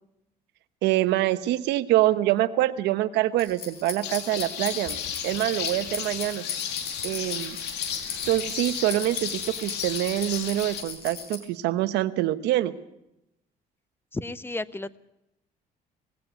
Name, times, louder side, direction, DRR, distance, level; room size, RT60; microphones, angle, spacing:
voice 1, 0.8-5.0 5.2-6.4 7.0-7.6 8.0-12.7, right 15 dB, 85° right, 11 dB, 1.0 m, -25 dB
sound 1, 3.4-11.4, left 6 dB, 70° left, 4.1 m, -37 dB
sound 2, 4.0-10.8, left 8 dB, 85° left, 2.2 m, -34 dB
voice 2, 14.1-15.0, left 2 dB, 15° left, 16 dB, 0.8 m, -33 dB
20.0 x 16.0 x 8.3 m, 0.86 s
cardioid pair, 110°, 17 cm